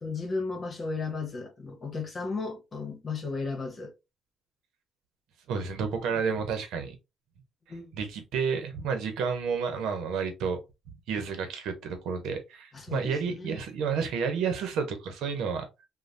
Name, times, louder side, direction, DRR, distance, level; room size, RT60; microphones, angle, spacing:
voice 1, 0.0-3.9 7.7-7.9 12.7-13.6, left 4 dB, 40° left, 1.1 m, -34 dB
voice 2, 5.5-7.0 7.9-10.6 11.1-15.7, right 6 dB, 85° right, 0.8 m, -30 dB
3.1 x 2.2 x 2.6 m
cardioid pair, 90°, 0 cm